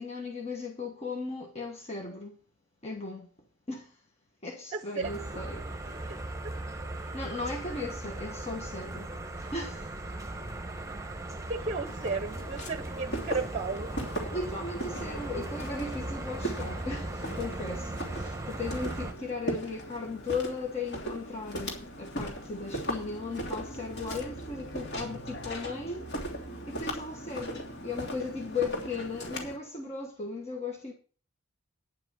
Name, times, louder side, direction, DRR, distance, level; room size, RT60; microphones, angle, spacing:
voice 1, 0.0-2.4 2.8-3.3 3.7-4.0 4.4-6.1 7.0-10.0 14.3-26.1 26.7-30.9, left 3 dB, 30° left, 1.3 m, -37 dB
voice 2, 4.7-5.5 5.9-6.2 11.5-13.9, right 4 dB, 30° right, 0.8 m, -34 dB
sound 1, 5.0-19.1, right 2 dB, 15° right, 1.2 m, -38 dB
Walk footsteps, 11.9-29.6, right 1 dB, 50° left, 3.1 m, -39 dB
10.5 x 6.0 x 7.6 m
head